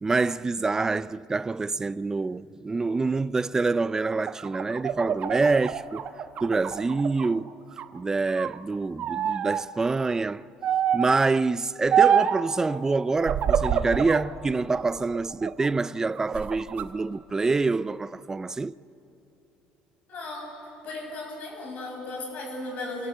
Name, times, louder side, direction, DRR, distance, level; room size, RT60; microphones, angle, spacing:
voice 1, 0.0-6.1 6.4-7.6 7.9-10.5 10.9-18.7, right 3 dB, 20° right, 0.4 m, -26 dB
sound 1, 4.1-7.3 7.7-8.6 9.0-9.6 10.6-11.1 11.9-12.5 13.2-14.3 14.7-15.7 16.2-16.9, right 8 dB, 50° right, 1.1 m, -26 dB
voice 2, 20.1-20.5 20.8-23.1, left 2 dB, 55° left, 6.9 m, -36 dB
28.0 x 17.5 x 8.0 m
supercardioid pair, 100°, 3 cm